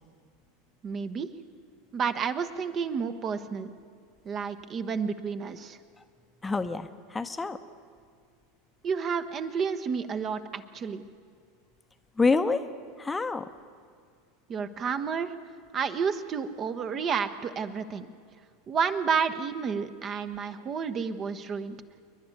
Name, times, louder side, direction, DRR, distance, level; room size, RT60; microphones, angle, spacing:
voice 1, 0.8-1.3 1.9-3.7 4.2-5.8 8.8-11.0 14.5-15.3 15.7-18.1 18.7-21.8, right 6 dB, 30° right, 9 dB, 1.0 m, -30 dB
voice 2, 6.4-7.6 12.2-12.7 13.0-13.5, left 4 dB, 15° left, 9 dB, 0.9 m, -27 dB
28.0 x 11.5 x 9.6 m, 2.1 s
figure-of-eight pair, 80°, 0 cm